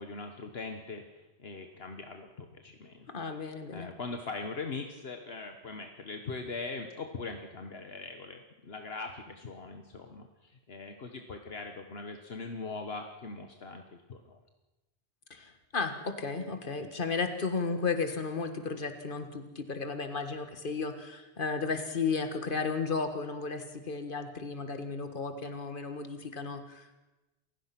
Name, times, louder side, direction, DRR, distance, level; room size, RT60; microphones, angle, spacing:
voice 1, 0.0-3.1 3.4-14.4, left 3 dB, 70° left, 5 dB, 1.5 m, -41 dB
voice 2, 3.1-3.9 15.3-27.0, left 4 dB, 55° left, 8 dB, 1.8 m, -34 dB
28.5 x 16.0 x 6.0 m, 1.0 s
omnidirectional pair, 1.1 m